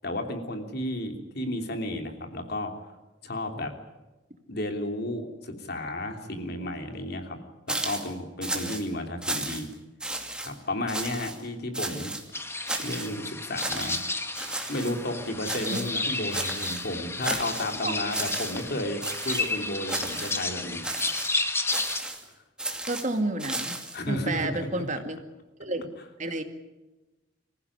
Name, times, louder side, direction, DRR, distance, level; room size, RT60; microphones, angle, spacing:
voice 1, 0.0-2.7 3.2-3.7 4.5-7.4 7.7-9.7 10.4-12.1 12.8-14.0 14.7-20.8 23.9-25.0, left 1 dB, 55° left, 5 dB, 3.3 m, -33 dB
sound 1, 7.7-8.1 8.4-8.8 9.2-9.7 10.0-10.5 10.9-11.4 11.7-12.2 12.7-13.1 13.6-14.0 14.3-15.0 15.4-16.0 16.3-16.9 17.2-17.7 18.1-18.7 19.0-19.5 19.9-20.4 20.8-21.3 21.7-22.2 22.6-24.0, right 2 dB, 5° right, 2.4 m, -33 dB
sound 2, 12.3-22.0, left 3 dB, 15° left, 1.6 m, -32 dB
voice 2, 22.9-23.8 24.1-25.2 25.6-25.8 26.2-26.4, right 2 dB, 40° right, 6 dB, 2.2 m, -30 dB
25.0 x 15.5 x 9.9 m, 1.1 s
head